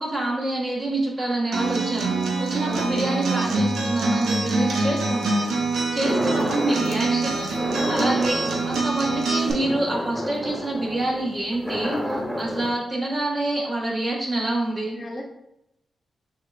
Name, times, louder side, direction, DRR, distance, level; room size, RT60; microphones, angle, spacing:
voice 1, 0.0-5.4 5.9-15.0, right 2 dB, 40° right, -3 dB, 1.3 m, -27 dB
Acoustic guitar, 1.5-9.5, right 3 dB, 85° right, 0.6 m, -25 dB
voice 2, 2.6-3.2 15.0-15.3, left 2 dB, 40° left, -1 dB, 0.5 m, -34 dB
sound 1, 6.0-7.1 7.5-12.7, equal, 10° right, 1.3 m, -29 dB
6.4 x 2.3 x 2.4 m, 0.83 s
cardioid pair, 50°, 0 cm